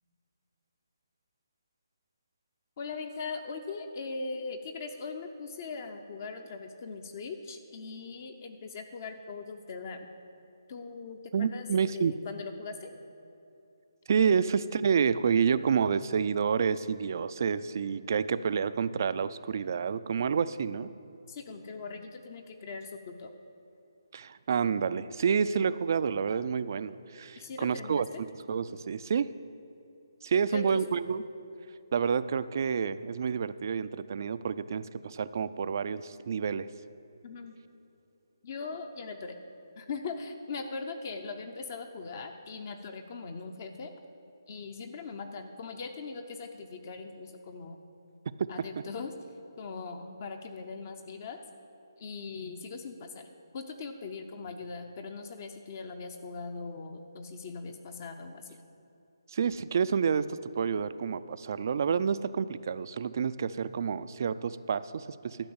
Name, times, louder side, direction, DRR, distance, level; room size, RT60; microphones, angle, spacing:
voice 1, 2.8-10.1 10.7-12.9 21.3-23.3 27.4-28.2 30.5-30.8 37.2-37.6 38.4-39.4 39.8-43.9 44.5-47.8 48.5-49.1 49.6-51.4 52.0-58.5, left 4 dB, 40° left, 6 dB, 0.7 m, -40 dB
voice 2, 11.3-12.1 14.1-20.9 24.1-28.1 28.5-29.3 30.2-31.2 31.9-36.7 48.4-48.5 59.3-65.4, right 6 dB, 50° right, 15 dB, 0.4 m, -29 dB
12.0 x 5.3 x 8.7 m, 2.8 s
figure-of-eight pair, 155°, 2 cm